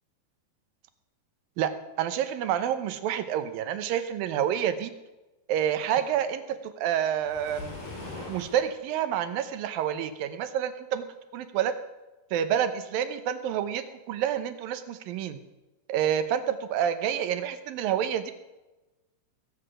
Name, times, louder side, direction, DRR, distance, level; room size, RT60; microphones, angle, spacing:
voice 1, 2.0-4.9 5.5-7.7 8.3-11.0 11.3-11.7 12.3-15.4 15.9-18.3, right 9 dB, 75° right, 11 dB, 2.5 m, -28 dB
Waves surf, 7.2-8.7, left 2 dB, 70° left, 6.6 m, -40 dB
20.5 x 8.2 x 6.2 m, 1.1 s
omnidirectional pair, 4.5 m